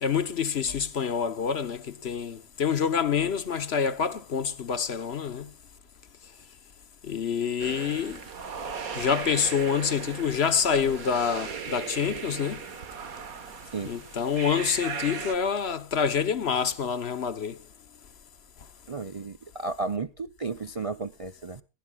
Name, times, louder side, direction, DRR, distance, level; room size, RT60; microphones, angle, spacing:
voice 1, 0.0-5.5 7.0-8.2 8.9-12.6 13.8-17.6, left 7 dB, 50° left, 1.1 m, -27 dB
sound 1, 7.6-15.3, right 6 dB, 85° right, 1.8 m, -37 dB
voice 2, 18.9-21.6, right 4 dB, 35° right, 0.5 m, -33 dB
21.0 x 15.5 x 2.3 m
omnidirectional pair, 1.4 m